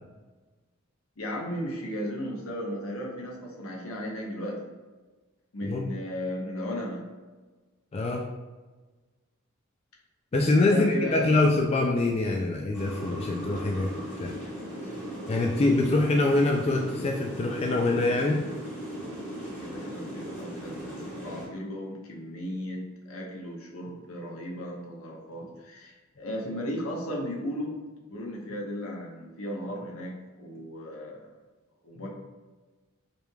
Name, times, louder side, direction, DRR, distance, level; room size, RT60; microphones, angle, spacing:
voice 1, 1.2-4.7 5.5-7.0 10.5-11.4 19.5-27.8 28.1-31.3 31.8-32.1, equal, 75° left, -2 dB, 0.9 m, -35 dB
voice 2, 7.9-8.3 10.3-13.9 14.2-14.3 15.3-18.4, left 2 dB, 30° left, 1 dB, 0.3 m, -24 dB
sound 1, 12.7-21.5, equal, 10° left, 1.4 m, -38 dB
5.0 x 3.2 x 2.3 m, 1.3 s
head